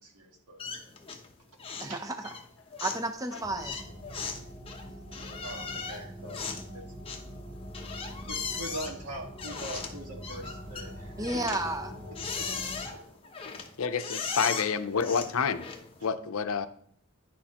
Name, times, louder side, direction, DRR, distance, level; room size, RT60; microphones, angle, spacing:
voice 1, 0.0-0.6 1.9-2.1 5.2-6.9 8.3-12.6 12.9-13.0 14.4-14.6, right 1 dB, 85° right, 1.7 m, -43 dB
sound 1, 0.6-1.3 1.6-2.0 2.2-16.0, left 5 dB, 25° left, 0.8 m, -38 dB
voice 2, 1.8-2.2 2.8-3.8 11.2-11.9, right 2 dB, 15° right, 0.6 m, -32 dB
sound 2, 3.4-12.9, equal, 5° left, 2.2 m, -44 dB
voice 3, 13.8-15.7 16.0-16.7, left 6 dB, 70° left, 0.6 m, -28 dB
10.0 x 6.4 x 2.9 m
head